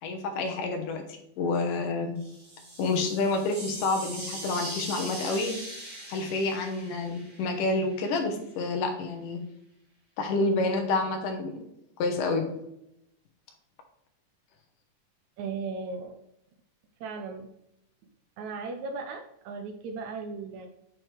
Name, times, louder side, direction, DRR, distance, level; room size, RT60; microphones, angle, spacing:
voice 1, 0.0-2.2 2.8-5.6 6.1-9.4 10.2-11.6 12.0-12.5, left 3 dB, 80° left, 3 dB, 2.7 m, -28 dB
sound 1, 2.2-8.1, right 1 dB, 35° right, 2.2 m, -41 dB
voice 2, 15.4-16.2 17.0-17.5 18.4-20.7, right 4 dB, 80° right, 5 dB, 1.9 m, -36 dB
8.2 x 4.6 x 3.3 m, 0.80 s
omnidirectional pair, 3.7 m